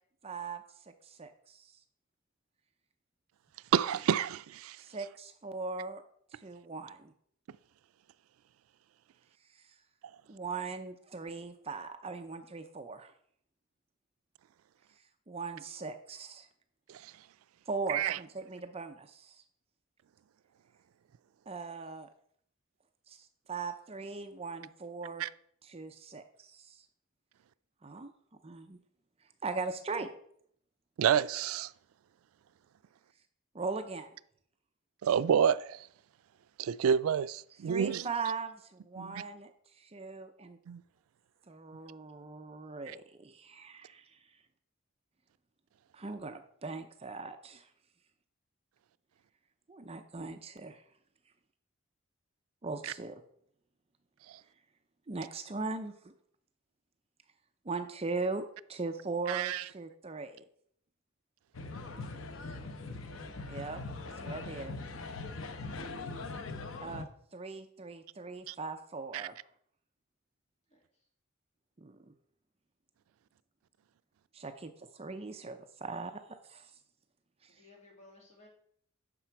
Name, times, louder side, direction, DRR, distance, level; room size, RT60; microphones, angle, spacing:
voice 1, 0.2-1.8 4.8-6.0 6.3-7.1 9.5-9.7 10.3-13.1 15.3-16.5 17.7-19.4 21.5-22.1 23.1-25.2 25.6-26.9 27.8-28.1 28.4-28.8 29.4-30.1 33.5-34.1 37.7-40.6 41.5-44.4 45.9-47.7 49.7-50.8 52.6-53.2 55.1-56.1 57.6-60.4 63.5-63.8 64.2-64.7 66.8-67.1 67.3-69.4 71.8-72.1 74.3-76.7 77.4-77.5, right 4 dB, 30° right, 0.6 m, -40 dB
voice 2, 3.7-4.8 16.9-17.1 17.9-18.2 25.2-25.3 31.0-31.7 35.0-35.9 36.6-38.0 39.0-39.2 40.7-40.8 52.8-52.9 59.3-59.6 68.5-68.6 69.1-69.3, right 8 dB, 90° right, 0.3 m, -29 dB
sound 1, 61.5-67.1, left 3 dB, 70° left, 0.8 m, -41 dB
voice 3, 62.3-62.8 70.7-70.8 77.5-78.5, left 1 dB, 35° left, 2.7 m, -59 dB
9.9 x 6.5 x 4.6 m
head